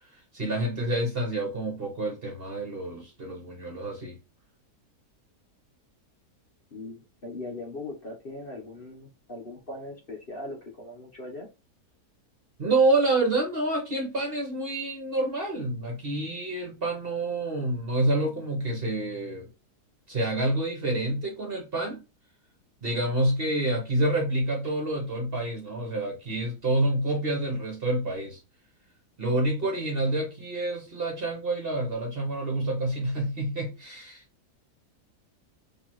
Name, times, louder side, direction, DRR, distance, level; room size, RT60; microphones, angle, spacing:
voice 1, 0.0-4.2 12.6-19.5 20.1-22.0 22.8-28.4 29.2-34.2, right 2 dB, 40° right, 1.1 m, -28 dB
voice 2, 6.7-11.5, left 2 dB, 40° left, 1.0 m, -40 dB
5.7 x 2.9 x 3.1 m
omnidirectional pair, 1.8 m